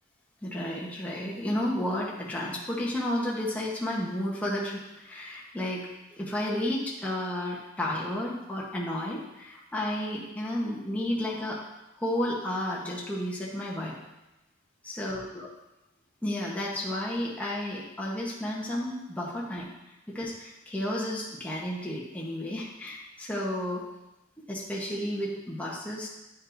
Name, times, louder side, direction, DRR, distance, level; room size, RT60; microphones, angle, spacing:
voice 1, 0.4-11.6 12.0-14.0 14.8-15.5 16.2-19.7 20.1-23.8 24.5-26.1, left 1 dB, 5° left, -5 dB, 0.9 m, -32 dB
9.2 x 5.3 x 2.6 m, 0.97 s
head